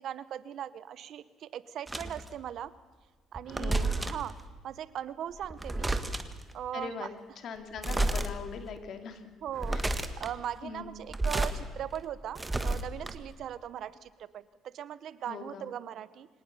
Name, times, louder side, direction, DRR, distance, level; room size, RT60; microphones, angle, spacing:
voice 1, 0.0-2.7 3.3-4.3 4.6-5.9 6.5-7.1 9.4-9.8 10.2-16.3, right 10 dB, 60° right, 16 dB, 1.0 m, -39 dB
sound 1, 1.9-2.3 3.3-4.3 5.4-6.4 7.8-8.3 8.8-8.9 9.5-10.3 11.0-11.6 12.0-13.4, right 2 dB, 15° right, 1.6 m, -31 dB
voice 2, 3.6-4.1 6.7-7.1 7.4-9.2 9.7-9.9 10.6-10.9 15.3-15.7, left 5 dB, 55° left, 7 dB, 2.7 m, -41 dB
24.5 x 18.5 x 6.9 m, 1.4 s
cardioid pair, 110°, 0 cm